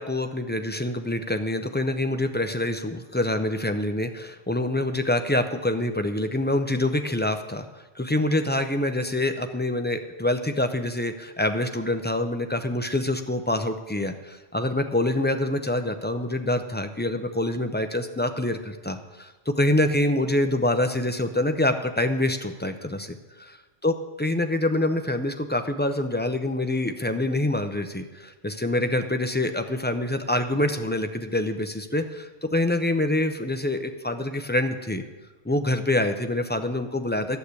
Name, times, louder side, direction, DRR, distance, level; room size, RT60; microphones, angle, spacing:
voice 1, 0.0-7.7 8.0-23.6 23.8-35.0 35.4-37.4, left 1 dB, 15° left, 7 dB, 0.3 m, -26 dB
11.5 x 6.6 x 8.2 m, 1.2 s
omnidirectional pair, 1.2 m